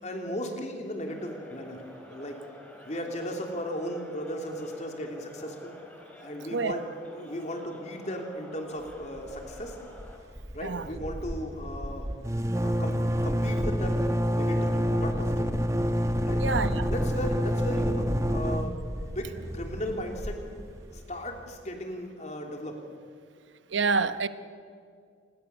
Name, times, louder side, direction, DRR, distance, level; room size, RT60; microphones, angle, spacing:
voice 1, 0.0-1.8 2.1-2.4 2.8-5.7 6.2-6.8 7.1-9.8 10.5-12.1 12.6-15.6 16.3-16.5 16.8-20.6 20.9-22.8, equal, 40° left, 3.1 m, -36 dB
sound 1, 1.0-10.2, left 1 dB, 10° left, 3.5 m, -50 dB
sound 2, 9.2-9.7 10.0-10.1 10.4-21.0, equal, 15° right, 1.0 m, -28 dB
voice 2, 16.4-16.9 23.7-24.3, right 4 dB, 80° right, 1.0 m, -27 dB
27.5 x 21.0 x 7.0 m
head